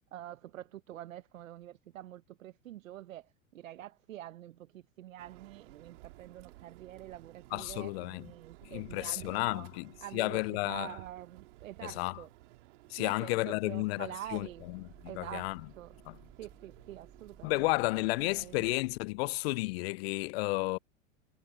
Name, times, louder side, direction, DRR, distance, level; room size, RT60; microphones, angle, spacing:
voice 1, 0.1-9.7 10.0-12.3 13.0-14.7 15.1-16.0 16.4-18.6, right 13 dB, 80° right, 1.0 m, -46 dB
sound 1, 5.2-18.8, right 20 dB, 60° right, 2.8 m, -56 dB
voice 2, 7.5-8.2 8.6-10.9 11.8-12.2 12.9-14.5 15.2-15.6 16.1-16.2 17.4-20.8, left 23 dB, 50° left, 0.4 m, -32 dB
sound 2, 14.2-19.8, right 4 dB, 15° right, 4.1 m, -60 dB
hypercardioid pair, 110°, 40 cm